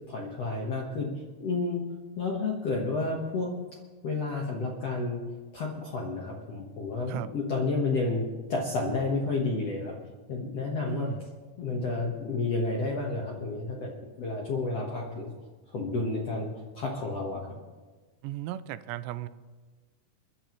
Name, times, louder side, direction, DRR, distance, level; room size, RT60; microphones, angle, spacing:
voice 1, 0.1-1.1 1.4-1.8 2.2-3.5 4.0-5.2 5.5-8.2 8.5-9.9 10.3-11.1 11.6-15.3 15.7-16.5 16.7-17.6, left 3 dB, 65° left, -1 dB, 1.6 m, -30 dB
voice 2, 10.9-11.2 18.2-19.3, right 12 dB, 85° right, 13 dB, 2.8 m, -35 dB
29.0 x 11.0 x 3.1 m, 1.3 s
omnidirectional pair, 4.9 m